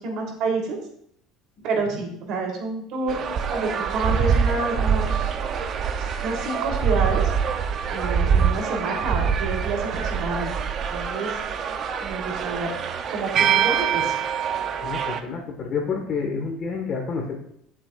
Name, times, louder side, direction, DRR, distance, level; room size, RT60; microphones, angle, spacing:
voice 1, 0.0-0.8 1.6-5.3 6.0-7.2 7.9-10.5 10.9-11.3 12.0-12.7 13.1-14.2, right 3 dB, 55° right, 1 dB, 3.4 m, -28 dB
sound 1, 3.1-15.2, right 7 dB, 35° right, 0.7 m, -24 dB
voice 2, 14.8-17.4, left 5 dB, 35° left, 2 dB, 1.6 m, -29 dB
16.5 x 7.8 x 2.5 m, 0.68 s
cardioid pair, 160°, 0 cm